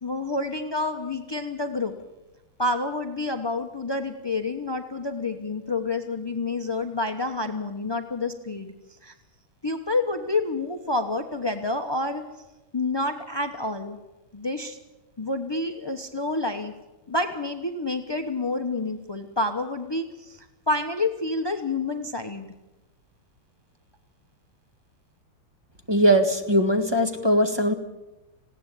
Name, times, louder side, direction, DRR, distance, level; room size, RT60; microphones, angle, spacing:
voice 1, 0.0-1.9 2.6-8.7 9.0-9.1 9.6-12.2 12.7-14.0 14.3-14.8 15.2-16.7 17.1-22.5, left 2 dB, 35° left, 7 dB, 0.4 m, -28 dB
voice 2, 25.9-27.7, equal, 15° right, 6 dB, 1.5 m, -20 dB
19.5 x 16.5 x 8.5 m, 1.0 s
omnidirectional pair, 2.3 m